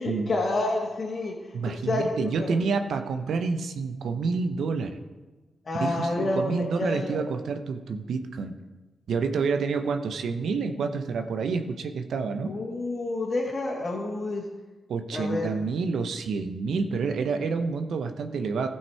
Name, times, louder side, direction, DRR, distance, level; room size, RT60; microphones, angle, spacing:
voice 1, 0.0-1.3 1.7-2.5 5.6-7.2 12.4-14.4 15.1-15.5, left 2 dB, 50° left, -4 dB, 1.8 m, -29 dB
voice 2, 1.5-5.0 5.8-8.5 9.1-12.5 14.9-18.7, right 4 dB, 75° right, 7 dB, 0.7 m, -28 dB
15.5 x 5.5 x 4.6 m, 1.2 s
hypercardioid pair, 40°, 0 cm